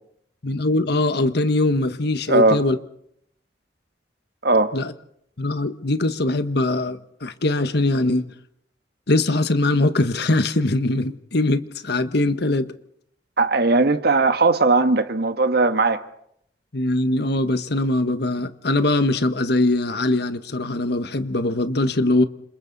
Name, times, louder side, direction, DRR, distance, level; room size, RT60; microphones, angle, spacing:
voice 1, 0.4-2.8 4.7-4.9 5.4-8.2 9.1-12.7 16.7-22.2, left 2 dB, 65° left, 1.4 m, -21 dB
voice 2, 2.3-2.6 4.4-4.7 13.4-16.0, right 3 dB, 65° right, 1.5 m, -18 dB
29.5 x 28.0 x 4.1 m
head